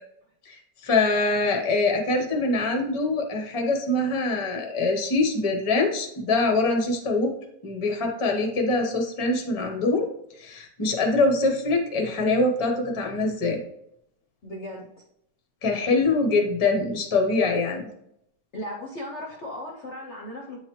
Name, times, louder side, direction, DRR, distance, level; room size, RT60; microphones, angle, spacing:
voice 1, 0.5-7.3 7.6-10.1 10.4-13.6 15.6-17.9, left 3 dB, 25° left, 2 dB, 0.6 m, -24 dB
voice 2, 14.4-14.9 18.5-20.6, left 1 dB, 55° left, -1 dB, 0.8 m, -36 dB
8.7 x 4.0 x 3.0 m, 0.76 s
omnidirectional pair, 2.0 m